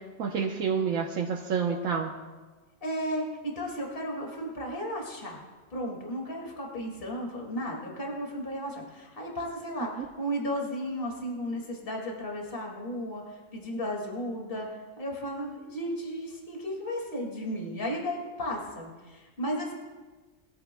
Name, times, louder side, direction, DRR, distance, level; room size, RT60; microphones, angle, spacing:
voice 1, 0.2-2.1 10.0-10.1, right 6 dB, 80° right, -1 dB, 1.4 m, -28 dB
voice 2, 2.8-5.4 5.7-14.7 15.0-19.7, equal, 40° left, -1 dB, 2.5 m, -34 dB
21.5 x 14.5 x 2.3 m, 1.3 s
omnidirectional pair, 1.4 m